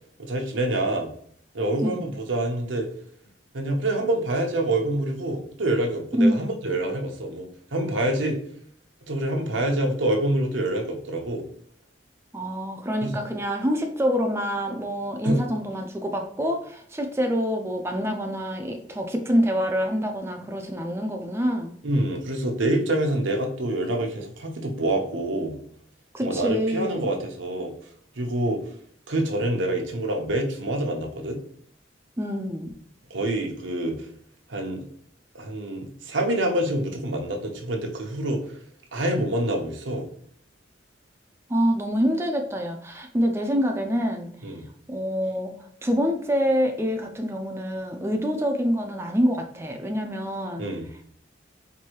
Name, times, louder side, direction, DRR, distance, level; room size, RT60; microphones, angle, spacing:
voice 1, 0.2-1.1 1.5-2.9 3.5-8.4 9.1-11.5 13.0-13.1 15.2-15.4 21.8-25.6 26.2-27.7 28.2-28.6 29.1-31.4 33.1-34.0 34.5-34.9 35.3-38.4 38.9-40.1 44.4-44.7 50.6-50.9, right 1 dB, 85° right, 2 dB, 0.8 m, -26 dB
voice 2, 6.2-6.5 12.3-21.7 26.1-27.1 32.2-32.7 41.5-44.3 44.9-45.6 45.8-50.6, equal, 15° right, 3 dB, 0.4 m, -26 dB
4.6 x 2.6 x 3.0 m, 0.63 s
head